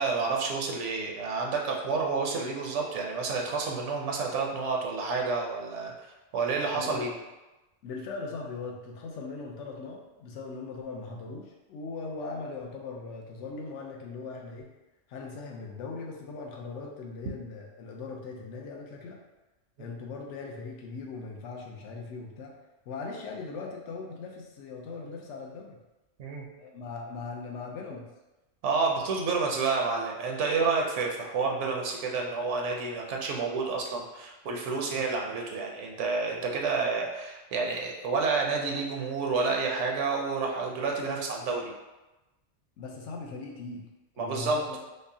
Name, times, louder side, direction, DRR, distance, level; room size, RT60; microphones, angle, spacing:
voice 1, 0.0-5.9 6.3-7.1 19.8-19.9 26.2-26.4 28.6-41.7 44.2-44.6, right 4 dB, 75° right, 0 dB, 0.9 m, -29 dB
voice 2, 7.8-14.7 15.1-19.2 19.8-22.6 22.9-25.8 26.6-28.0 42.8-43.9 44.2-44.8, left 4 dB, 75° left, 0 dB, 0.9 m, -39 dB
5.2 x 2.0 x 2.6 m, 1.1 s
omnidirectional pair, 1.2 m